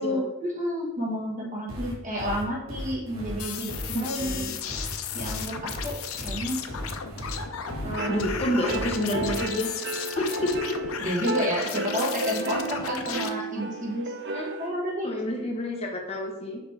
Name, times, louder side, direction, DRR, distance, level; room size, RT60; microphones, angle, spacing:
voice 1, 0.0-4.5 5.1-6.7 7.8-8.3 8.6-8.7 11.0-15.1, equal, 40° right, -3 dB, 1.6 m, -31 dB
sound 1, 1.7-9.4, equal, 80° right, 1.7 m, -36 dB
sound 2, 3.4-13.3, left 7 dB, 85° left, 0.5 m, -35 dB
voice 2, 3.9-4.6 8.1-9.7 10.2-10.8 14.2-14.5 15.0-16.6, left 1 dB, 30° left, 0 dB, 1.0 m, -29 dB
sound 3, 7.7-14.7, right 2 dB, 55° right, 0.6 m, -33 dB
6.0 x 5.1 x 3.4 m, 0.93 s
head